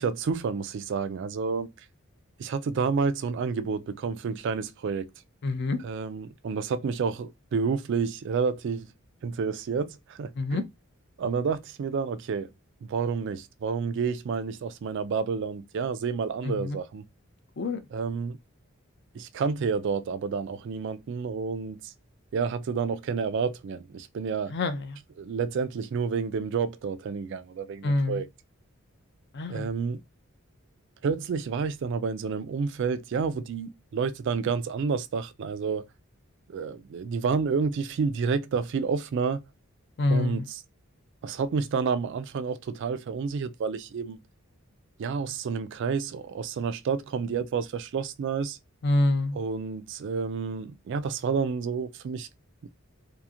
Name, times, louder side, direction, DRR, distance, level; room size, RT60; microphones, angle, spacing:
voice 1, 0.0-1.7 2.4-5.1 5.8-8.9 9.2-10.6 11.2-12.5 12.8-17.0 17.9-18.4 19.1-21.9 22.3-24.5 25.2-28.3 29.5-30.0 31.0-35.9 36.5-39.4 40.1-40.6 41.2-44.2 45.0-48.6 49.3-52.3 52.6-52.7, right 5 dB, 55° right, 0.3 m, -29 dB
voice 2, 5.4-5.8 10.4-10.6 16.4-16.8 17.6-17.8 24.5-25.0 27.8-28.2 29.3-29.7 40.0-40.4 48.8-49.4, left 2 dB, 50° left, 0.5 m, -26 dB
2.8 x 2.5 x 2.4 m
head